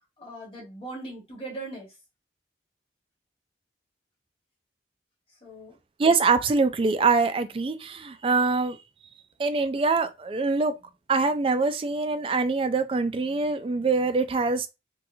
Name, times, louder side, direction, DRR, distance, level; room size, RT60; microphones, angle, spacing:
voice 1, 0.2-1.9 5.4-5.8, right 2 dB, 30° left, 1.6 m, -39 dB
voice 2, 6.0-8.8 9.4-10.7 11.1-14.7, right 4 dB, 30° right, 0.3 m, -24 dB
4.1 x 2.3 x 2.7 m
head